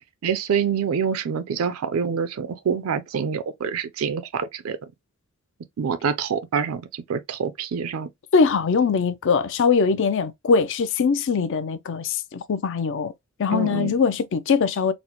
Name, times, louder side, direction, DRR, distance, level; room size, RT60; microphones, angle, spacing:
voice 1, 0.2-4.8 5.8-8.1 13.5-13.9, right 6 dB, 70° right, 0.4 m, -26 dB
voice 2, 8.3-13.1 13.4-14.9, left 5 dB, 60° left, 0.4 m, -21 dB
4.0 x 2.0 x 2.8 m
head